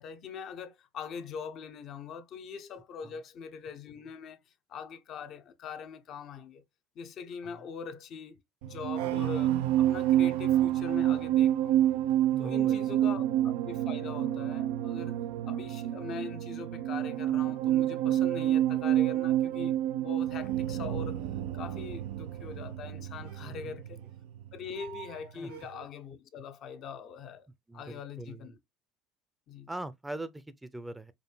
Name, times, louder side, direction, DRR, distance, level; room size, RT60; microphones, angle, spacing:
voice 1, 0.0-4.4 4.7-6.6 7.0-11.9 12.4-15.2 15.4-21.2 21.5-24.0 24.5-27.5 27.7-28.6 29.5-29.7, left 6 dB, 55° left, 0.7 m, -42 dB
sound 1, 8.6-25.3 25.5-25.8, right 12 dB, 80° right, 0.4 m, -29 dB
voice 2, 12.3-13.1 23.4-24.0 25.3-25.5 27.7-28.6 29.7-31.1, right 2 dB, 10° right, 0.6 m, -42 dB
5.0 x 2.1 x 3.2 m
hypercardioid pair, 70°, 0 cm